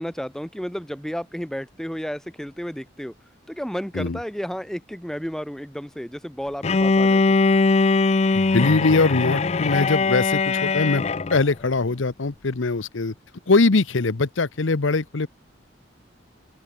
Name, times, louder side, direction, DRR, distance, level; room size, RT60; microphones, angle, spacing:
voice 1, 0.0-3.1 3.5-7.4, equal, 5° left, 1.2 m, -32 dB
Bowed string instrument, 6.6-11.5, left 3 dB, 35° left, 0.5 m, -20 dB
voice 2, 8.3-11.0 11.3-13.1 13.5-15.3, left 3 dB, 80° left, 0.9 m, -21 dB
open air
head